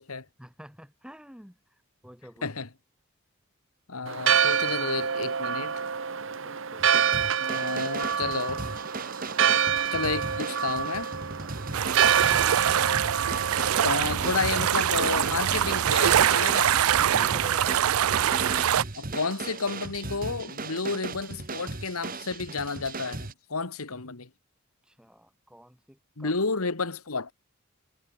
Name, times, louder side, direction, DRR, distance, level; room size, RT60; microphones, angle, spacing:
voice 1, 0.4-1.6 2.0-2.5 6.2-7.0 9.3-9.6 11.4-11.9 17.1-18.0 24.9-26.3, equal, 5° right, 4.7 m, -50 dB
voice 2, 3.9-5.7 7.4-8.7 9.9-11.1 13.8-16.8 19.0-24.3 26.2-27.3, left 4 dB, 85° left, 1.7 m, -31 dB
Church bell, 4.1-15.6, right 7 dB, 60° right, 0.9 m, -27 dB
sound 1, 6.8-23.3, right 3 dB, 40° right, 1.6 m, -37 dB
sound 2, 11.7-18.8, right 10 dB, 85° right, 0.5 m, -24 dB
head